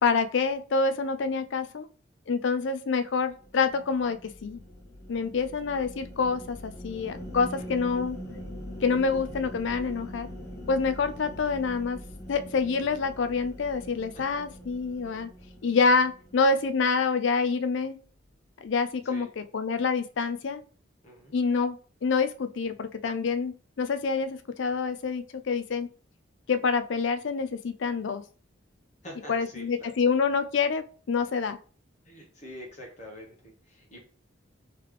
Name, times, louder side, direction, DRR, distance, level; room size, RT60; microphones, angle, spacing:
voice 1, 0.0-1.9 2.3-4.6 5.1-8.2 8.8-10.3 10.7-12.0 12.3-15.3 15.6-18.0 18.6-20.6 21.3-21.8 22.0-25.9 26.5-28.2 29.3-31.6, left 4 dB, 65° left, 11 dB, 0.4 m, -27 dB
sound 1, 3.3-16.8, equal, 15° left, 0.7 m, -43 dB
voice 2, 21.0-21.3 29.0-29.9 32.0-34.0, equal, 35° left, -1 dB, 1.1 m, -45 dB
3.8 x 3.2 x 3.2 m, 0.40 s
head